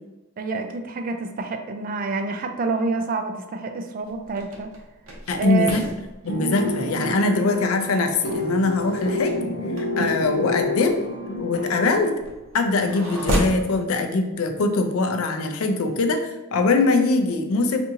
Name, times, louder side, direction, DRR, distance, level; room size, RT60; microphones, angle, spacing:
voice 1, 0.4-4.7 5.3-5.8, right 4 dB, 40° right, 6 dB, 0.3 m, -27 dB
sound 1, 4.0-13.7, equal, 80° right, 0.7 m, -33 dB
voice 2, 5.3-5.8 6.2-9.3 10.0-11.0 11.4-12.2 12.5-17.8, left 3 dB, 80° left, 5 dB, 0.4 m, -22 dB
sound 2, 6.2-12.0, left 1 dB, 60° left, 0.8 m, -28 dB
3.7 x 2.6 x 2.7 m, 1.1 s
head